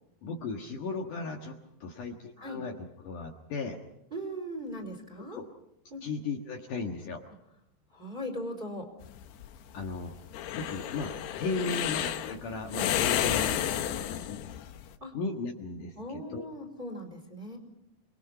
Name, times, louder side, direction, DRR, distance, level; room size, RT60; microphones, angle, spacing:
voice 1, 0.2-3.8 5.3-5.5 6.0-7.2 9.7-10.1 10.5-13.6 13.9-14.4 15.1-16.5, left 3 dB, 60° left, 1 dB, 2.8 m, -36 dB
voice 2, 4.1-5.4 5.9-6.0 7.9-8.9 11.6-11.8 13.3-13.5 15.0-15.1 15.9-17.6, equal, 15° right, 3 dB, 4.2 m, -39 dB
sound 1, 9.0-14.9, left 11 dB, 90° left, 3.2 m, -31 dB
29.5 x 21.0 x 5.7 m, 0.83 s
omnidirectional pair, 4.6 m